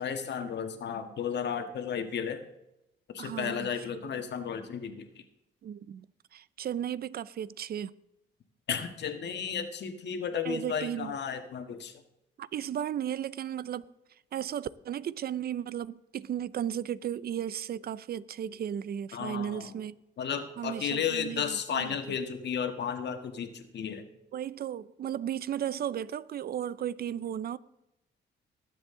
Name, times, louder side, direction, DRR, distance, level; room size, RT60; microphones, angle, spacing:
voice 1, 0.0-2.4 3.1-5.2 8.7-12.0 19.1-19.7 20.2-24.0, left 7 dB, 60° left, 1.5 m, -33 dB
voice 2, 3.2-3.7 5.6-6.1 6.3-7.9 10.5-11.2 12.4-13.8 14.3-20.0 20.6-21.9 24.3-27.6, right 10 dB, 50° right, 0.5 m, -35 dB
19.5 x 7.7 x 3.7 m
cardioid pair, 90°, 20 cm